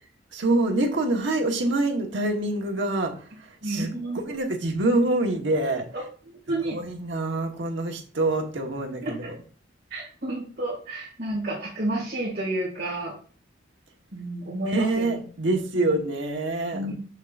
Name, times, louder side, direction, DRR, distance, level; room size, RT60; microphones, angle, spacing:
voice 1, 0.3-3.1 3.4-3.9 4.1-5.9 6.6-9.3 14.6-16.9, right 2 dB, 90° right, 2 dB, 1.2 m, -26 dB
voice 2, 3.6-4.4 6.3-6.8 9.0-9.3 9.9-13.1 14.1-15.2 15.8-15.9 16.7-16.9, right 1 dB, 55° right, -6 dB, 2.0 m, -31 dB
6.6 x 6.4 x 2.5 m, 0.41 s
head